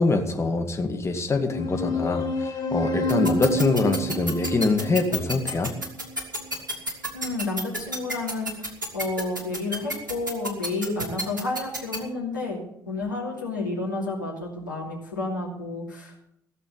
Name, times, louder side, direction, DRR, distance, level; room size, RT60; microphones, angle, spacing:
voice 1, 0.0-5.7, left 3 dB, 25° left, 4 dB, 2.3 m, -24 dB
sound 1, 1.5-6.5, equal, 45° left, 2.9 m, -29 dB
sound 2, 3.1-12.0, right 1 dB, 85° right, 1.5 m, -29 dB
voice 2, 7.1-8.5 8.9-16.1, left 2 dB, 85° left, -3 dB, 2.8 m, -30 dB
16.0 x 6.8 x 8.2 m, 0.75 s
figure-of-eight pair, 50°, 10 cm